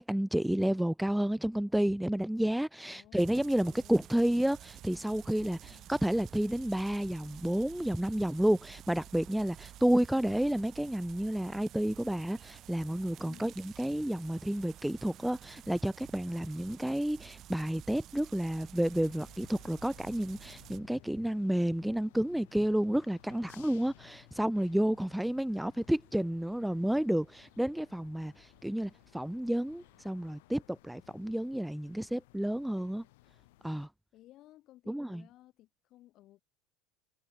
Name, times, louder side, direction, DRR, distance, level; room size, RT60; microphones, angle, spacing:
voice 1, 0.0-33.0 33.6-33.9 34.9-35.2, right 1 dB, ahead, 0.4 m, -31 dB
voice 2, 2.8-4.0 5.6-5.9 13.2-13.6 34.1-36.4, left 15 dB, 50° left, 4.9 m, -58 dB
sound 1, 3.2-20.8, right 13 dB, 45° right, 0.8 m, -52 dB
sound 2, 18.9-33.9, left 21 dB, 80° left, 1.5 m, -60 dB
Livestock farm animals working animals, 23.1-30.4, right 5 dB, 20° right, 4.9 m, -70 dB
supercardioid pair, 125°, 0 cm